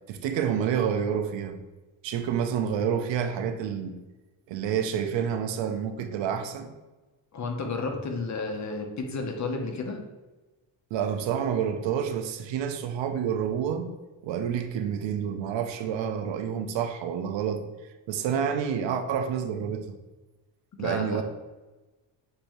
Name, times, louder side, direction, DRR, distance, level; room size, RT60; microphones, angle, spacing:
voice 1, 0.1-1.6 2.0-4.0 4.5-6.7 10.9-13.9 14.2-17.7 18.1-20.0 20.8-21.2, right 8 dB, 75° right, 0.6 m, -28 dB
voice 2, 7.3-10.0 20.8-21.2, left 3 dB, 40° left, 0.8 m, -32 dB
6.8 x 2.6 x 3.0 m
cardioid pair, 120°, 45 cm